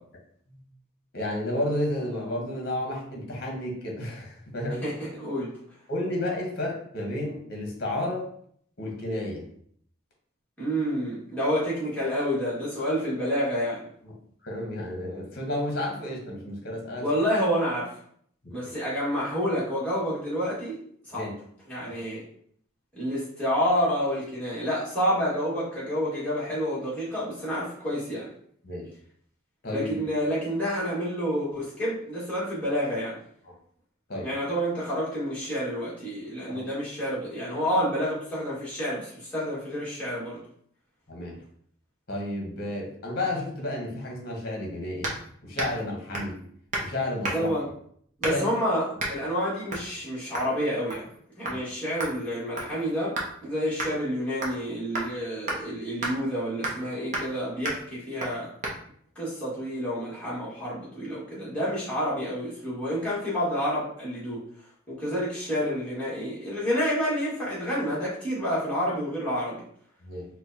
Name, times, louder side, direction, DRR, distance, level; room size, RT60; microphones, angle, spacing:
voice 1, 1.1-4.8 5.9-8.3 8.8-9.4 14.0-14.1 14.4-17.1 18.4-18.7 21.1-21.3 21.9-22.0 28.6-28.9 29.6-29.9 34.1-34.3 36.5-36.7 41.1-41.4 42.1-45.1 45.4-46.4 46.8-47.5 48.3-48.4 51.5-51.6 70.0-70.3, left 1 dB, 50° left, 0 dB, 0.9 m, -31 dB
voice 2, 4.8-5.5 10.6-13.9 17.0-17.9 18.5-20.8 21.1-21.3 21.7-22.2 22.9-28.3 29.7-33.2 34.2-40.4 47.3-47.7 48.2-51.0 51.4-53.2 53.4-58.5 59.1-64.4 64.9-69.6, equal, 5° left, -9 dB, 1.4 m, -29 dB
sound 1, 45.0-45.2 45.6-45.8 46.1-46.4 46.7-46.9 47.2-47.6 48.2-48.5 49.0-49.2 49.7-49.9 50.3-50.5 50.9-51.2 51.5-51.6 52.0-53.3 53.8-53.9 54.4-54.6 55.0-55.1 55.5-55.6 56.0-56.1 56.6-56.9 57.1-57.3 57.7-57.8 58.2-58.3 58.6-58.8, right 2 dB, 35° right, 0.7 m, -32 dB
4.5 x 2.2 x 2.6 m, 0.63 s
head